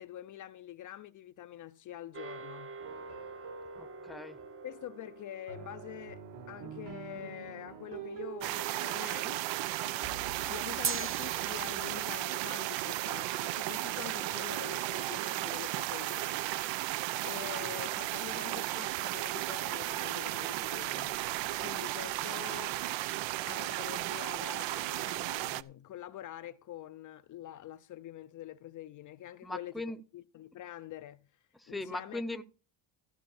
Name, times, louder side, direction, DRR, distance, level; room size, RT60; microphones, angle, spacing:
voice 1, 0.0-2.8 4.6-9.4 9.8-16.4 17.2-21.2 21.6-22.8 23.5-31.3 31.7-32.2, left 13 dB, 45° left, 0.5 m, -46 dB
sound 1, 2.1-8.6 10.8-15.3, right 7 dB, 30° right, 0.8 m, -45 dB
sound 2, 2.8-12.1, right 7 dB, 65° right, 2.7 m, -47 dB
voice 2, 3.8-4.4 29.4-30.0 31.7-32.4, left 2 dB, ahead, 0.6 m, -39 dB
sound 3, 8.4-25.6, right 16 dB, 80° right, 0.7 m, -35 dB
14.5 x 5.4 x 7.0 m
cardioid pair, 140°, 44 cm